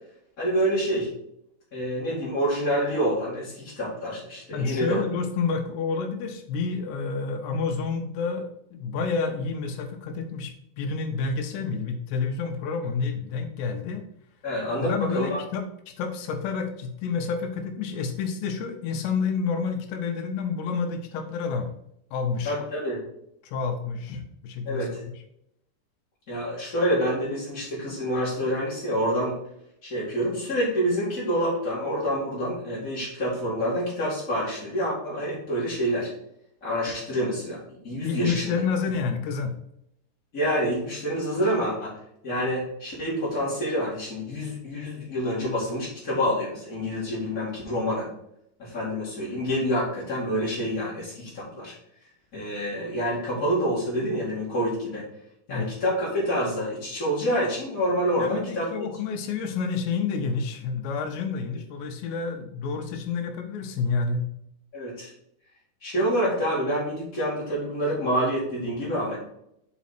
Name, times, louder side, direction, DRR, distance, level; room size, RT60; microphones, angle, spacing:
voice 1, 0.4-1.1 1.7-5.0 14.4-15.4 22.4-23.0 24.6-25.0 26.3-29.3 29.8-36.1 36.6-37.6 37.8-38.5 40.3-42.0 42.2-48.1 48.6-51.7 52.3-55.0 55.5-58.7 64.7-65.1 65.8-69.2, equal, 40° left, -7 dB, 1.2 m, -27 dB
voice 2, 4.5-14.0 14.8-21.7 22.1-22.6 23.4-25.0 38.0-39.5 55.5-55.7 58.2-64.2, left 5 dB, 80° left, 5 dB, 2.6 m, -29 dB
6.1 x 5.0 x 4.2 m, 0.77 s
omnidirectional pair, 5.2 m